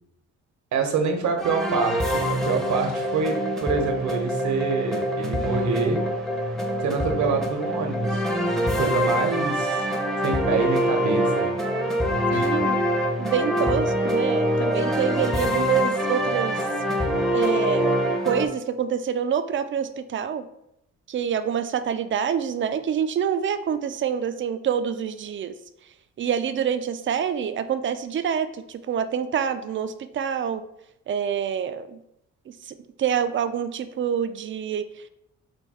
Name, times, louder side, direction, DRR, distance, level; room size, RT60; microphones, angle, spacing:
voice 1, 0.7-6.0 6.8-8.2 8.5-9.8 10.2-11.5 12.3-12.6, right 4 dB, 70° right, 5 dB, 0.9 m, -26 dB
sound 1, 1.4-18.5, equal, ahead, 0.7 m, -25 dB
voice 2, 12.3-12.8 13.2-16.6 17.3-20.5 21.1-25.5 26.2-30.6 31.1-32.0 32.5-35.1, right 8 dB, 40° right, 11 dB, 0.4 m, -27 dB
4.5 x 2.3 x 4.7 m, 0.82 s
cardioid pair, 90°, 30 cm